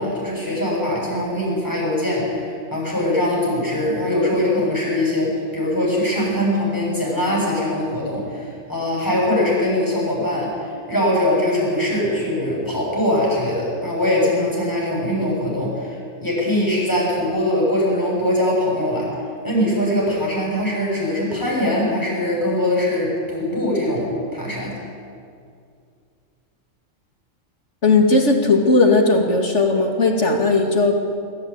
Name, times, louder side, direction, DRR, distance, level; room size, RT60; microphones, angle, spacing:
voice 1, 0.0-24.8, left 1 dB, 15° left, -4 dB, 7.5 m, -22 dB
voice 2, 27.8-31.0, left 3 dB, 60° left, 2 dB, 2.7 m, -17 dB
23.5 x 14.5 x 8.9 m, 2.3 s
omnidirectional pair, 1.3 m